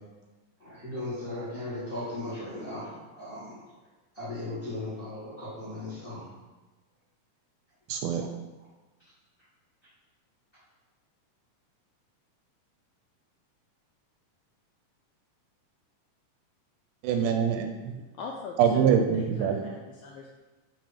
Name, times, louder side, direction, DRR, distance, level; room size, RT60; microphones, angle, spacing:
voice 1, 0.6-3.6 4.1-6.3 8.6-8.7, left 1 dB, 35° left, -8 dB, 0.9 m, -37 dB
voice 2, 7.9-8.3 17.0-17.9 18.6-19.6, right 7 dB, 80° right, 5 dB, 2.0 m, -24 dB
voice 3, 18.2-20.3, left 4 dB, 85° left, -1 dB, 1.7 m, -41 dB
7.4 x 2.9 x 5.0 m, 1.2 s
omnidirectional pair, 3.9 m